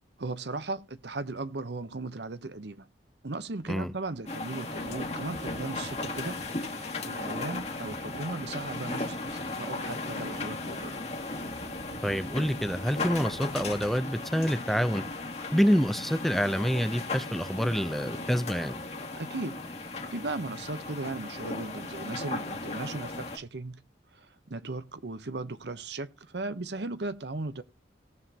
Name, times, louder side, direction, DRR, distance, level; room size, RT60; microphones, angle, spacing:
voice 1, 0.2-2.9 3.2-11.0 19.2-23.8 24.1-27.6, right 3 dB, 65° right, 0.9 m, -37 dB
Thunder / Rain, 3.9-15.3, equal, 45° right, 3.0 m, -52 dB
sound 1, 4.3-23.4, left 2 dB, 35° left, 1.9 m, -36 dB
voice 2, 12.0-15.0 15.5-18.8, equal, ahead, 0.5 m, -27 dB
18.0 x 7.3 x 2.8 m
head